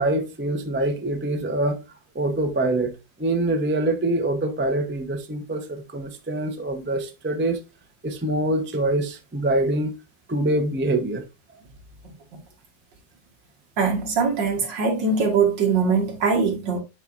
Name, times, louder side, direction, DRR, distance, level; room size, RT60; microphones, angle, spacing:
voice 1, 0.0-1.8 2.1-2.9 3.2-7.6 8.0-9.9 10.3-11.2, right 2 dB, 10° right, 0.5 m, -24 dB
voice 2, 13.8-16.8, right 5 dB, 75° right, 2.4 m, -22 dB
9.0 x 4.7 x 2.6 m
omnidirectional pair, 2.0 m